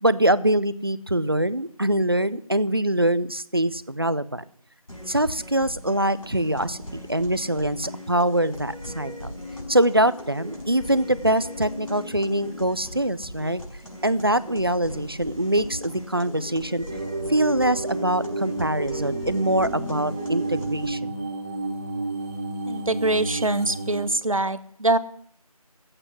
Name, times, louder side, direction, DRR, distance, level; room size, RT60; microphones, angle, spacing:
voice 1, 0.0-4.4 5.1-9.3 9.7-13.6 14.0-16.8 17.3-21.1, right 1 dB, 40° right, 17 dB, 0.6 m, -23 dB
sound 1, 4.9-20.9, left 1 dB, 65° left, 5.8 m, -39 dB
sound 2, 16.9-24.0, right 2 dB, 25° right, 2.7 m, -31 dB
voice 2, 22.7-25.0, right 2 dB, 60° right, 15 dB, 1.1 m, -24 dB
14.0 x 8.9 x 9.6 m, 0.63 s
figure-of-eight pair, 175°, 19 cm